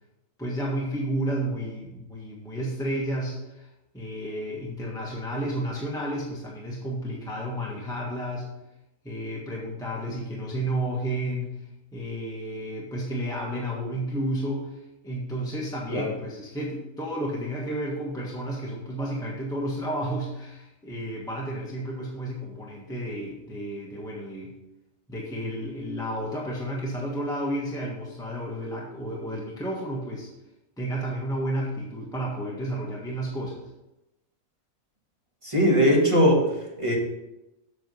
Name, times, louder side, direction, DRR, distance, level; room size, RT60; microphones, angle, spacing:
voice 1, 0.4-3.7 3.9-8.5 9.0-11.5 11.9-24.5 25.1-30.3 30.8-33.6, right 1 dB, 5° left, -4 dB, 1.4 m, -31 dB
voice 2, 35.4-37.0, equal, 25° right, -2 dB, 1.9 m, -21 dB
8.1 x 6.1 x 5.4 m, 0.93 s
omnidirectional pair, 1.4 m